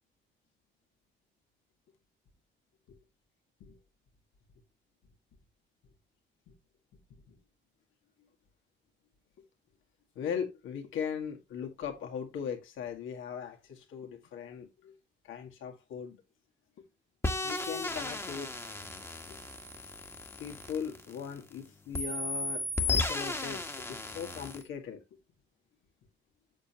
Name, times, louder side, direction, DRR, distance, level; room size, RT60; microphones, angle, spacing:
voice 1, 10.2-14.9 15.3-16.2 17.4-18.5 20.4-25.0, left 7 dB, 85° left, 2.0 m, -39 dB
sound 1, 17.2-21.5 21.9-24.6, left 2 dB, 10° left, 1.4 m, -35 dB
7.4 x 6.9 x 2.9 m
cardioid pair, 90°, 20 cm